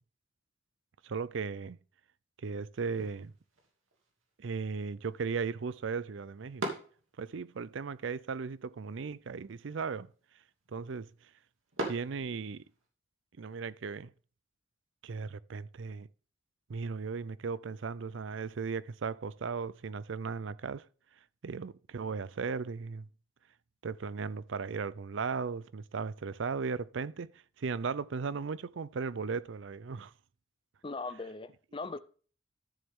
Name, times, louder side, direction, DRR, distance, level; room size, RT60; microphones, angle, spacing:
voice 1, 1.0-1.8 2.4-3.3 4.4-6.7 7.2-10.1 10.7-11.1 11.8-12.6 13.4-14.1 15.0-16.1 16.7-20.9 21.4-23.1 23.8-30.1, right 5 dB, 70° right, 0.5 m, -36 dB
sound 1, 2.8-12.9, right 1 dB, 90° right, 2.5 m, -45 dB
voice 2, 30.8-32.0, left 3 dB, 25° left, 0.6 m, -39 dB
12.5 x 7.1 x 3.6 m
head